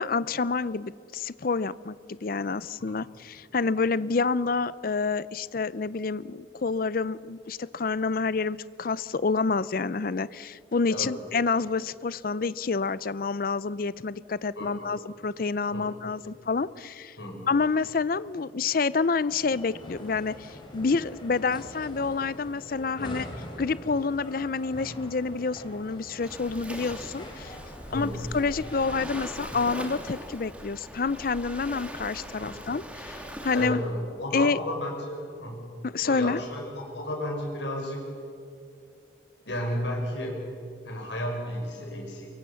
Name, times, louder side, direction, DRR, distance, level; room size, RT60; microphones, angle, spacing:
voice 1, 0.0-17.2 17.5-23.3 23.6-27.6 27.9-33.8 34.3-34.6 35.8-36.4, left 4 dB, 50° left, 18 dB, 0.5 m, -28 dB
voice 2, 14.6-14.9 15.7-15.8 17.2-17.5 23.0-23.3 27.9-28.3 32.4-32.5 33.5-35.7 36.0-38.1 39.4-40.5 40.8-42.3, left 1 dB, 70° left, 1 dB, 5.6 m, -33 dB
sound 1, 19.4-29.7, left 1 dB, 25° left, 3.6 m, -44 dB
Waves surf, 26.2-33.7, equal, 5° right, 2.0 m, -41 dB
23.5 x 23.5 x 7.0 m, 2.5 s
head